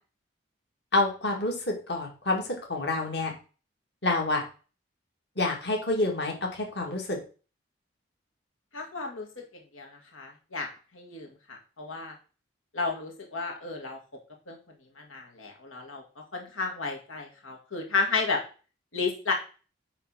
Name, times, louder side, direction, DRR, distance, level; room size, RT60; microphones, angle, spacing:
voice 1, 0.9-3.3 4.0-4.4 5.4-7.2, left 2 dB, 55° left, 1 dB, 2.0 m, -28 dB
voice 2, 8.7-9.4 9.7-12.2 12.7-14.0 14.5-14.6 15.0-16.0 16.3-18.4 18.9-19.3, left 4 dB, 90° left, 2 dB, 1.8 m, -32 dB
9.1 x 3.5 x 6.0 m, 0.36 s
head